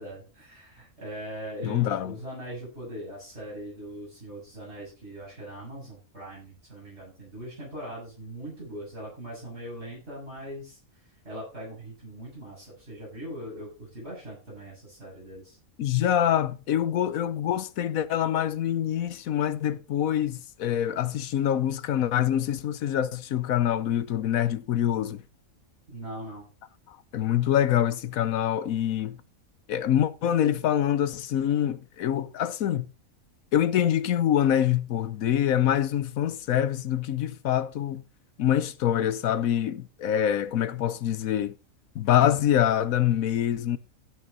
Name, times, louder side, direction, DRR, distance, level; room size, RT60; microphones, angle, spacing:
voice 1, 0.0-15.6 25.9-26.5, right 1 dB, 50° right, 8.2 m, -41 dB
voice 2, 1.6-2.1 15.8-25.2 27.1-29.2 29.7-32.9 33.5-38.0 38.4-41.5 41.9-43.8, left 10 dB, 80° left, 1.2 m, -25 dB
16.0 x 6.3 x 4.0 m
omnidirectional pair, 1.4 m